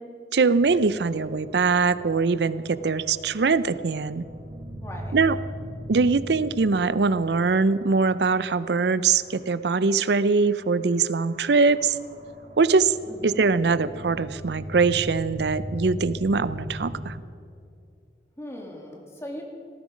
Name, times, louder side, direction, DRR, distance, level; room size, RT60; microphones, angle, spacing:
voice 1, 0.3-4.2 5.1-5.4 5.9-11.9 12.6-12.9 13.2-17.2, right 4 dB, 75° right, 16 dB, 0.5 m, -22 dB
sound 1, 0.6-10.0 10.3-17.2, equal, 45° right, 1.8 m, -40 dB
voice 2, 4.8-5.2 13.1-13.5 18.4-19.4, equal, 15° left, 0 dB, 2.3 m, -39 dB
18.0 x 14.5 x 5.1 m, 2.5 s
head